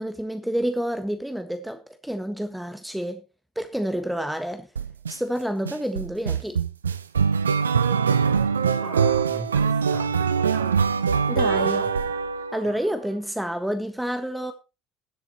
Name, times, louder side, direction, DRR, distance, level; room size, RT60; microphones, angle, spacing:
voice 1, 0.0-3.2 3.5-4.7 5.1-6.6 11.3-11.9 12.5-14.5, equal, 5° right, 1.5 m, -29 dB
sound 1, 4.8-5.1 5.7-12.8, right 6 dB, 80° right, 0.6 m, -23 dB
voice 2, 8.7-11.0 11.5-11.9 12.6-12.8, right 4 dB, 60° right, 5.2 m, -39 dB
20.5 x 7.8 x 2.9 m
figure-of-eight pair, 60°, 0 cm